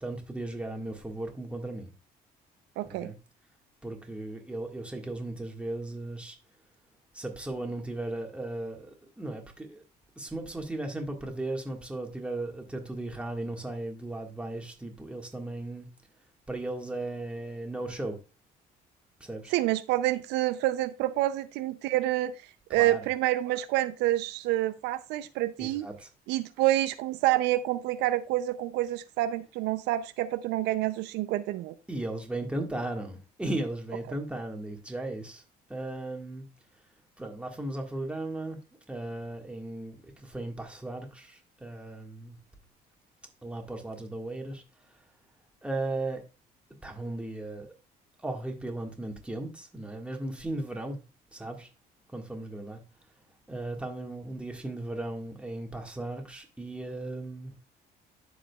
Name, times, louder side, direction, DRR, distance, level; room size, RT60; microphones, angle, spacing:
voice 1, 0.0-1.9 2.8-3.2 3.8-6.4 7.1-9.8 10.2-15.9 16.5-18.2 19.2-19.5 22.8-23.1 25.6-26.1 31.9-35.4 35.7-36.5 37.2-38.6 38.9-42.4 43.4-44.6 45.6-46.2 46.8-47.7 48.2-51.0 51.3-51.7 52.1-52.8 53.5-57.6, right 2 dB, 5° right, 1.7 m, -36 dB
voice 2, 2.8-3.1 19.5-22.3 22.7-25.9 26.3-31.7, right 15 dB, 90° right, 0.5 m, -28 dB
13.0 x 5.0 x 2.3 m
cardioid pair, 110°, 17 cm